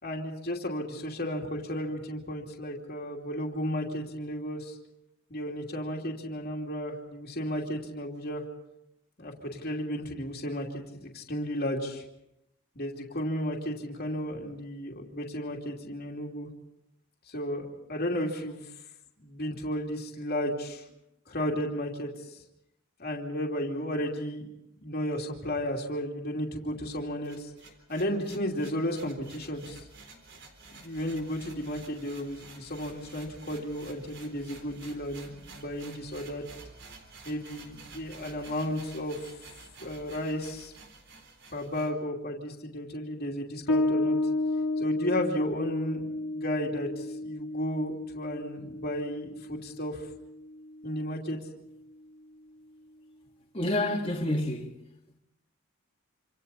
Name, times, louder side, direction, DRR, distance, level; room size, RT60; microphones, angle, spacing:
voice 1, 0.0-4.7 5.3-8.4 9.2-12.0 12.7-16.5 17.3-18.7 19.2-20.8 21.3-22.4 23.0-24.5 24.8-27.5 27.9-29.8 30.7-36.4 37.2-39.2 39.8-40.7 41.5-44.2 44.8-50.1 50.8-51.4, equal, 45° left, 2.8 m, -33 dB
sound 1, 26.9-41.9, right 3 dB, 60° right, 3.9 m, -50 dB
Bass guitar, 43.7-50.8, left 2 dB, 80° left, 1.8 m, -32 dB
voice 2, 53.5-54.7, left 1 dB, 25° left, 2.6 m, -28 dB
27.0 x 27.0 x 4.2 m
head